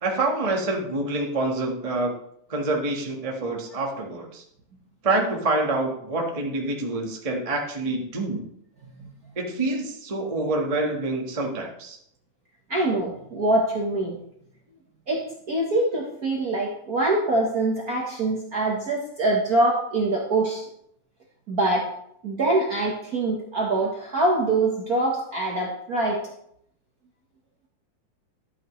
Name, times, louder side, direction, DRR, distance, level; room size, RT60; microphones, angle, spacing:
voice 1, 0.0-2.1 2.5-4.4 5.0-8.4 9.4-12.0, right 2 dB, 40° right, 0 dB, 0.4 m, -26 dB
voice 2, 12.7-14.2 15.1-20.6 21.5-21.9 22.2-26.2, right 2 dB, 55° right, -2 dB, 1.0 m, -24 dB
12.0 x 8.6 x 3.1 m, 0.71 s
omnidirectional pair, 3.4 m